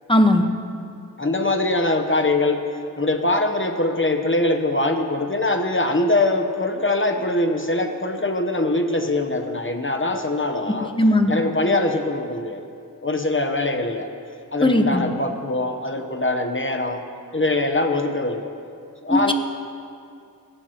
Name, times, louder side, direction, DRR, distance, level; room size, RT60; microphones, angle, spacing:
voice 1, 0.1-0.5 11.0-11.3 14.6-15.0 19.1-19.3, left 1 dB, 15° left, 5 dB, 1.1 m, -17 dB
voice 2, 1.2-2.6 3.0-10.9 11.3-12.6 13.0-14.1 14.5-17.0 17.3-18.4 19.0-19.3, left 2 dB, 35° left, 5 dB, 1.0 m, -22 dB
19.0 x 16.5 x 3.0 m, 2.4 s
wide cardioid pair, 55°, 36 cm